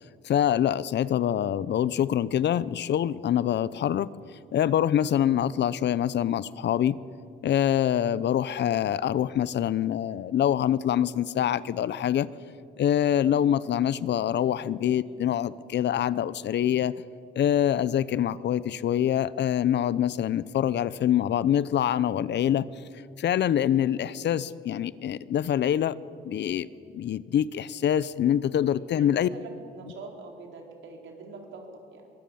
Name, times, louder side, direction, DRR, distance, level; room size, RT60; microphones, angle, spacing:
voice 1, 0.2-4.1 4.5-7.0 7.4-12.3 12.8-16.9 17.4-22.7 23.2-26.0 26.2-26.7 26.9-29.3, left 10 dB, 60° left, 18 dB, 0.7 m, -25 dB
voice 2, 28.7-32.1, right 3 dB, 75° right, 2 dB, 4.2 m, -45 dB
23.5 x 20.5 x 7.2 m, 2.5 s
cardioid pair, 90°, 20 cm